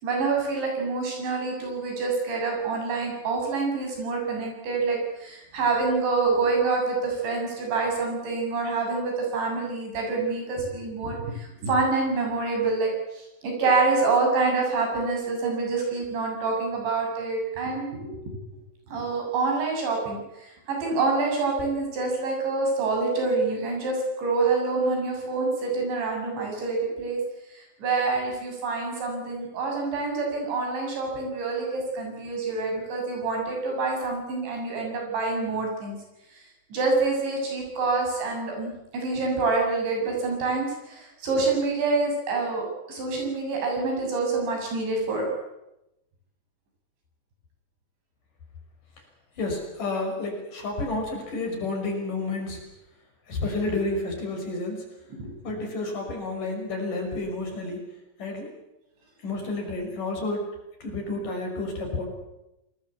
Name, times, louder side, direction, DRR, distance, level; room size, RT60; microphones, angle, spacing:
voice 1, 0.0-18.4 18.9-27.2 27.5-36.0 36.3-36.4 36.7-42.6 42.9-45.3 55.2-55.3, right 3 dB, 85° right, 1 dB, 9.7 m, -27 dB
voice 2, 49.4-52.6 53.3-54.8 55.4-57.8 58.2-58.5 59.2-60.4 60.8-62.1, left 2 dB, 50° left, 2 dB, 7.2 m, -30 dB
27.5 x 20.5 x 8.4 m, 0.90 s
omnidirectional pair, 5.0 m